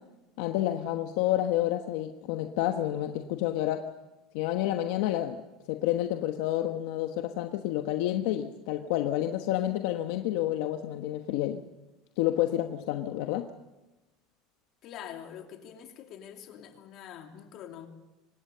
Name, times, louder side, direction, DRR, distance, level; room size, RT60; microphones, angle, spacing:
voice 1, 0.4-3.9 4.3-5.4 5.7-11.6 12.2-13.5, left 13 dB, 70° left, 6 dB, 1.2 m, -29 dB
voice 2, 14.8-17.9, left 9 dB, 45° left, 4 dB, 2.8 m, -45 dB
25.0 x 18.5 x 6.9 m, 1.1 s
cardioid pair, 150°, 0 cm